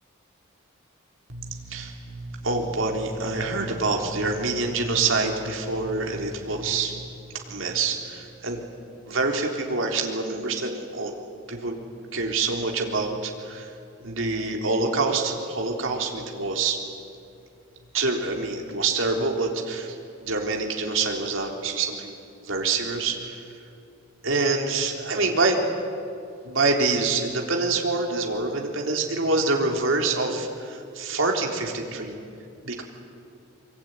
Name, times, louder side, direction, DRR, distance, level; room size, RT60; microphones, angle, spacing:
voice 1, 1.3-8.6 9.1-11.1 11.5-11.8 12.1-13.7 14.0-16.8 17.9-22.1 22.4-23.4 24.2-25.6 26.4-32.2 32.6-32.8, right 3 dB, 80° right, 1 dB, 3.8 m, -26 dB
24.5 x 24.5 x 9.7 m, 2.6 s
head